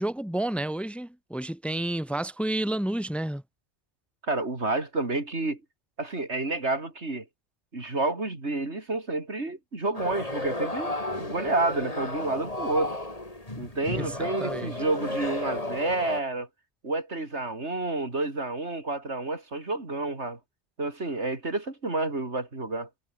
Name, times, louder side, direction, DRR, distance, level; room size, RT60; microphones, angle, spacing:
voice 1, 0.0-3.4 13.9-14.7, right 1 dB, ahead, 1.4 m, -30 dB
voice 2, 4.2-5.6 6.0-7.3 7.7-13.0 13.6-16.5 16.8-20.4 20.8-22.9, right 2 dB, 90° right, 4.3 m, -29 dB
sound 1, 9.9-16.2, left 2 dB, 35° left, 3.5 m, -33 dB
omnidirectional pair, 1.1 m